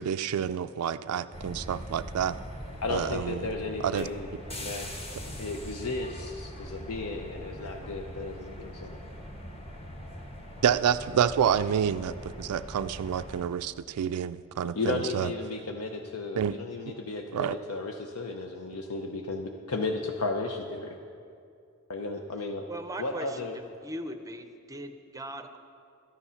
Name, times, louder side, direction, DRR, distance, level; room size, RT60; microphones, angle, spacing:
voice 1, 0.0-2.4 2.9-3.4 3.8-4.1 10.6-15.3 16.4-16.5 17.3-17.6, right 8 dB, 90° right, 11 dB, 0.3 m, -28 dB
ambience Vienna underground train inside, 1.3-13.4, equal, 25° left, 1.2 m, -42 dB
voice 2, 2.8-4.9 5.3-9.0 14.7-21.0 21.9-22.7 23.0-23.6, left 3 dB, 75° left, 3 dB, 0.7 m, -34 dB
voice 3, 22.7-23.5 23.8-25.6, right 1 dB, 15° right, 8 dB, 0.6 m, -39 dB
13.0 x 9.8 x 5.7 m, 2.4 s
head